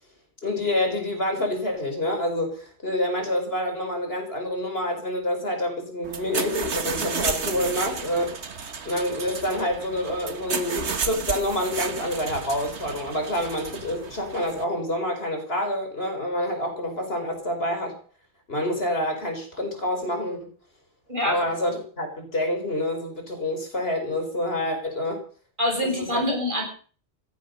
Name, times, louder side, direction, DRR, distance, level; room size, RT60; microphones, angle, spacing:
voice 1, 0.4-8.4 8.8-17.9 18.5-20.5 21.2-25.2 25.8-26.4, left 1 dB, 65° left, 4 dB, 5.0 m, -27 dB
sound 1, 6.0-14.6, right 5 dB, 85° right, 1.7 m, -32 dB
voice 2, 21.1-21.5 25.6-26.6, left 1 dB, 50° right, 1 dB, 7.4 m, -25 dB
16.0 x 14.5 x 5.5 m, 0.43 s
omnidirectional pair, 1.1 m